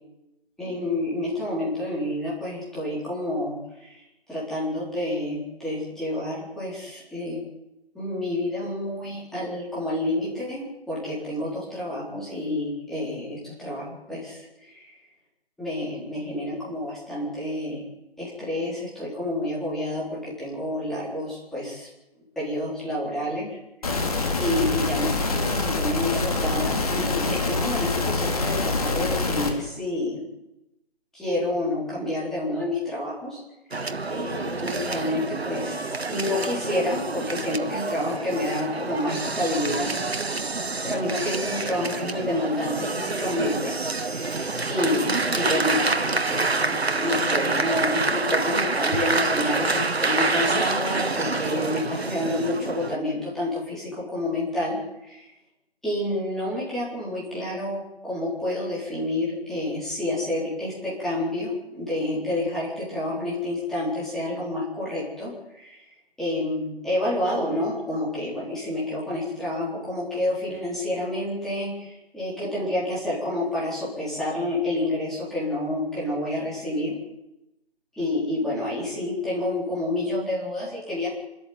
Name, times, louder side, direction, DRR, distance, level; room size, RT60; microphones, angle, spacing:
voice 1, 0.6-4.0 4.3-7.4 7.9-14.9 15.6-17.8 18.2-21.9 22.4-23.6 24.4-30.3 31.1-33.4 33.7-39.9 40.8-43.7 44.1-55.3 55.8-65.8 66.2-77.0 77.9-81.1, left 1 dB, ahead, -8 dB, 4.0 m, -29 dB
sound 1, 23.8-29.5, left 3 dB, 35° left, 3.8 m, -25 dB
sound 2, 33.7-53.0, right 3 dB, 70° right, 1.9 m, -27 dB
27.0 x 13.5 x 9.5 m, 0.93 s
figure-of-eight pair, 165°, 33 cm